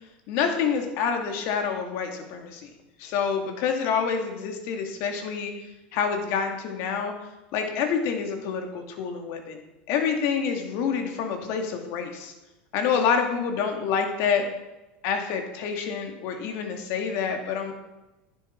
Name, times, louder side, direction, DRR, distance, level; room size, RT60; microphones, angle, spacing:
voice 1, 0.3-2.7 3.0-5.5 5.9-7.1 7.5-9.6 9.9-12.3 12.7-14.5 15.0-17.7, left 6 dB, 60° left, 4 dB, 2.3 m, -27 dB
11.5 x 10.5 x 4.6 m, 1.0 s
hypercardioid pair, 100°, 5 cm